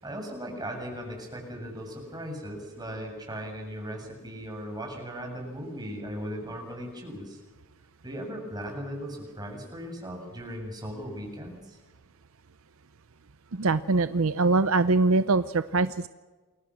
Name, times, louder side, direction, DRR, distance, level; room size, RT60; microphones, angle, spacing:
voice 1, 0.0-7.4 8.0-11.8, equal, 20° right, 1 dB, 7.4 m, -38 dB
voice 2, 13.5-16.1, right 3 dB, 65° right, 13 dB, 0.7 m, -23 dB
29.0 x 23.0 x 6.4 m, 1.3 s
head